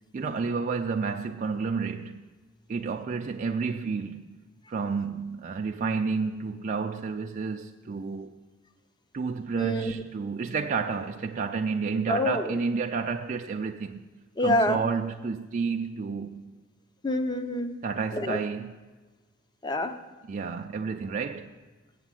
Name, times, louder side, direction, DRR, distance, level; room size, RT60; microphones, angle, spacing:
voice 1, 0.1-2.3 2.7-4.4 4.7-8.3 9.1-14.0 14.4-16.4 17.8-18.8 20.3-21.5, right 5 dB, 40° right, 0.3 m, -30 dB
voice 2, 9.5-9.9 12.1-12.6 14.4-14.8 17.0-17.7 18.1-18.4 19.6-19.9, left 1 dB, 20° left, 0.5 m, -26 dB
8.2 x 7.2 x 7.4 m
head